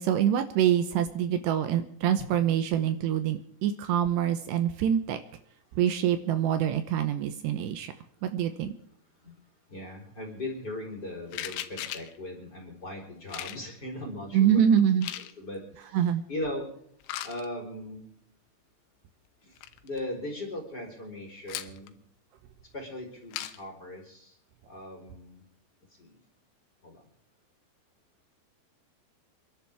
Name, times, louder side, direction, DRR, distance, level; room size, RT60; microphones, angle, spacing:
voice 1, 0.0-5.2 5.7-7.9 8.2-8.7 14.3-15.1 15.9-16.2, right 9 dB, 75° right, 9 dB, 2.9 m, -25 dB
voice 2, 9.7-14.6 15.2-16.7 17.2-18.1 19.4-19.6 19.8-22.0 22.6-24.4 24.7-25.4 25.9-26.2 26.8-27.1, left 1 dB, 25° left, 0 dB, 3.9 m, -39 dB
sound 1, 11.3-12.2 13.3-13.6 14.8-15.3 17.0-17.5 19.3-19.4 19.6-20.0 21.5-21.9 23.3-23.6, left 13 dB, 85° left, 3.4 m, -37 dB
28.5 x 11.5 x 3.5 m, 0.69 s
omnidirectional pair, 5.3 m